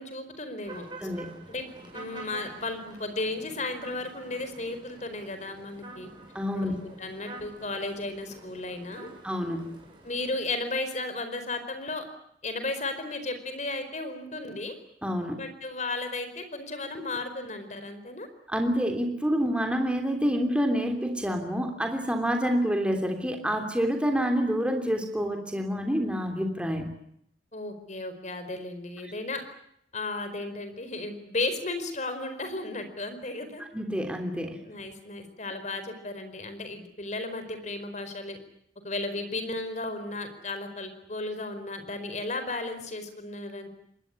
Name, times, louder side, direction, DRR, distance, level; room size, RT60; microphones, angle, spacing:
voice 1, 0.0-0.9 1.5-1.7 1.9-6.1 6.5-9.1 10.0-12.0 12.4-14.7 15.3-18.3 27.5-29.4 29.9-33.6 34.6-38.4 38.8-43.7, left 2 dB, 40° left, 9 dB, 4.7 m, -34 dB
sound 1, 0.6-10.3, right 2 dB, 25° right, 7.7 m, -47 dB
voice 2, 1.0-1.3 6.3-6.8 9.2-9.7 15.0-15.4 18.5-26.9 33.7-34.6, equal, 5° right, 4 dB, 3.2 m, -27 dB
25.0 x 20.0 x 9.7 m, 0.73 s
head